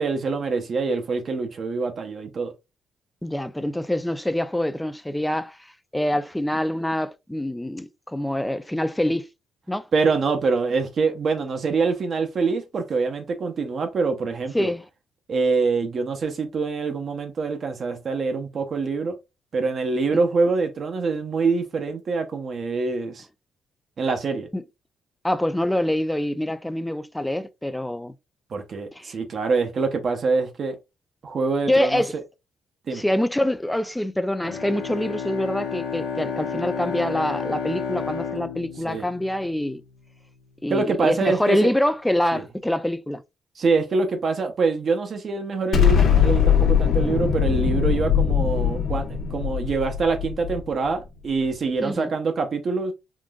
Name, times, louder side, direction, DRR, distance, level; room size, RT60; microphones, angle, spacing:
voice 1, 0.0-2.5 9.9-14.7 15.3-19.2 19.5-23.2 24.0-24.5 28.5-30.8 31.2-32.0 32.9-33.0 38.9-39.1 40.7-41.7 42.3-42.4 43.6-52.9, right 4 dB, 50° right, 0.6 m, -25 dB
voice 2, 3.2-5.6 5.9-9.3 9.7-9.9 12.5-12.6 14.5-14.9 20.1-20.2 24.5-24.6 25.2-28.1 28.9-29.2 31.7-32.1 32.9-39.8 40.6-43.2 51.8-52.1, left 1 dB, 5° left, 0.3 m, -25 dB
Bowed string instrument, 34.4-40.0, left 6 dB, 85° left, 1.0 m, -31 dB
Explosion, 45.7-50.9, left 8 dB, 65° left, 1.1 m, -21 dB
3.7 x 2.5 x 2.3 m
cardioid pair, 90°, 0 cm